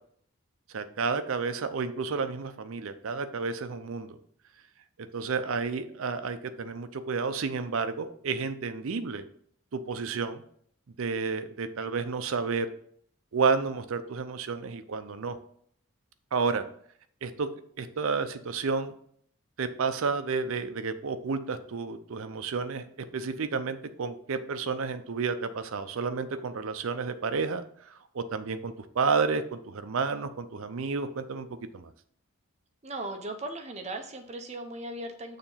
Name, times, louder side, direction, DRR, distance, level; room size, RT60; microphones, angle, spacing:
voice 1, 0.7-4.2 5.1-9.2 9.7-10.4 11.0-12.7 13.3-15.4 16.3-16.6 17.2-17.5 17.8-18.9 19.6-22.9 23.1-31.5 31.7-31.9, right 4 dB, 70° right, 10 dB, 0.5 m, -31 dB
voice 2, 32.8-35.4, right 2 dB, 30° right, 5 dB, 0.7 m, -37 dB
6.7 x 2.9 x 5.6 m, 0.63 s
head